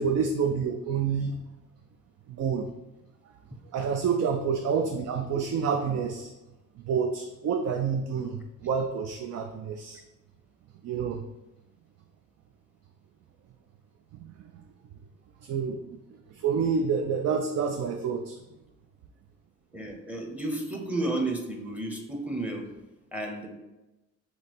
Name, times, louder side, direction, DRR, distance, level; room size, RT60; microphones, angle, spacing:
voice 1, 0.0-1.4 2.3-2.7 3.7-6.3 6.8-10.0 10.8-11.3 14.2-14.6 15.4-15.8 16.3-18.4, right 6 dB, 60° right, 5 dB, 0.4 m, -28 dB
voice 2, 19.7-22.6 23.1-23.5, right 2 dB, 5° right, 2 dB, 0.8 m, -32 dB
3.9 x 3.2 x 4.2 m, 1.0 s
cardioid pair, 90°, 30 cm